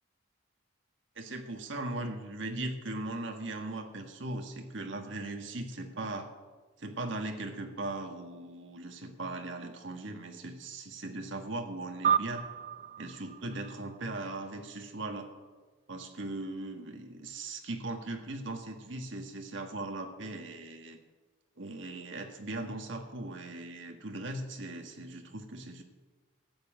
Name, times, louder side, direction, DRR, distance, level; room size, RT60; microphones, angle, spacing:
voice 1, 1.1-6.3 6.8-12.4 13.0-15.3 15.9-21.0 21.6-25.8, right 2 dB, 65° right, 4 dB, 1.6 m, -39 dB
sound 1, 12.0-14.8, right 8 dB, 35° right, 0.3 m, -33 dB
14.5 x 9.5 x 7.7 m, 1.3 s
head